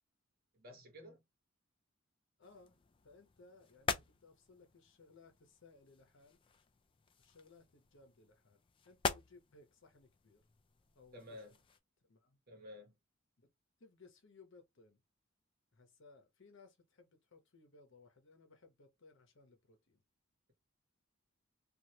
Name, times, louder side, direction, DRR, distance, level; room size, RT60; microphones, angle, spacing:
voice 1, 0.5-1.2 11.1-11.6 12.5-12.9, left 1 dB, 45° right, 1.1 m, -52 dB
voice 2, 2.4-2.8 3.0-6.4 7.2-10.4 10.9-11.4 12.0-12.4 13.4-13.5 13.8-15.0 15.7-20.0, left 3 dB, 60° left, 0.9 m, -63 dB
sound 1, 2.4-11.8, left 4 dB, 25° left, 0.3 m, -45 dB
3.0 x 2.5 x 2.8 m
head